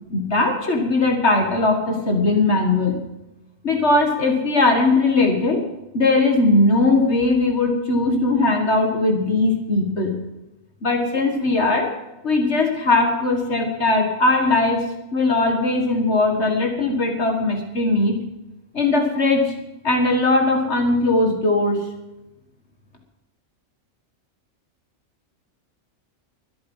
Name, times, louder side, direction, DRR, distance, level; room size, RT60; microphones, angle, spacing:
voice 1, 0.1-3.0 3.6-5.6 5.9-10.2 10.8-11.9 12.2-14.8 15.1-18.2 18.7-19.5 19.8-21.9, left 2 dB, 60° left, 3 dB, 2.1 m, -19 dB
22.5 x 8.6 x 5.6 m, 0.96 s
omnidirectional pair, 1.3 m